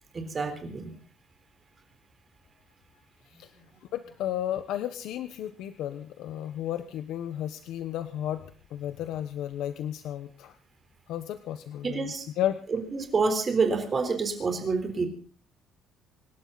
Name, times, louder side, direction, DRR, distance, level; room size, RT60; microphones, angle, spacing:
voice 1, 0.1-0.9 11.8-12.2 12.7-15.1, right 4 dB, 25° right, 6 dB, 3.8 m, -27 dB
voice 2, 3.9-10.5 11.1-12.6, left 11 dB, 70° left, 10 dB, 1.1 m, -33 dB
26.5 x 12.0 x 4.0 m, 0.40 s
cardioid pair, 155°, 0 cm